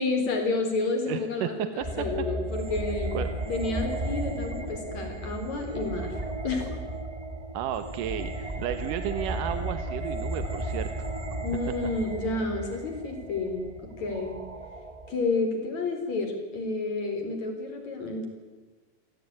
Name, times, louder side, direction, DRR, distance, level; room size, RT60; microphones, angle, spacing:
voice 1, 0.0-3.2 3.5-6.1 6.4-6.9 11.4-13.6 14.0-14.3 15.1-18.3, left 3 dB, 45° left, 4 dB, 5.3 m, -30 dB
voice 2, 1.1-2.1 3.1-3.3 7.5-10.9, right 10 dB, 70° right, 10 dB, 2.3 m, -33 dB
sound 1, 1.8-15.1, right 1 dB, 25° right, 0.7 m, -34 dB
27.0 x 17.0 x 9.7 m, 1.4 s
omnidirectional pair, 4.5 m